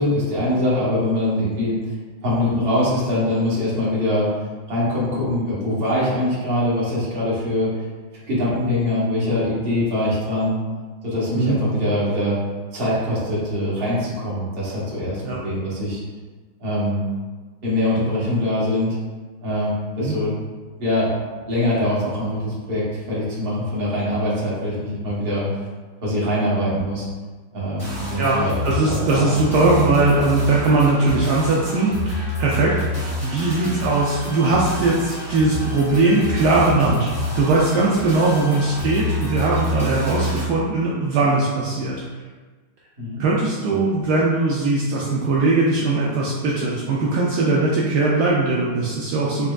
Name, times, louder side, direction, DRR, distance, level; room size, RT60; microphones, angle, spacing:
voice 1, 0.0-1.8 2.2-4.3 4.7-7.7 8.3-10.6 11.0-12.4 12.7-16.0 16.6-17.0 17.6-19.0 19.4-20.3 20.8-21.1 21.5-25.5 26.0-27.1 27.5-29.3 43.0-43.2, left 1 dB, 35° right, -7 dB, 1.0 m, -23 dB
sound 1, 27.8-40.5, left 1 dB, 10° right, 1.2 m, -28 dB
voice 2, 28.2-42.0 43.2-49.5, right 3 dB, 80° right, -5 dB, 0.9 m, -20 dB
4.2 x 3.6 x 2.3 m, 1.4 s
omnidirectional pair, 2.3 m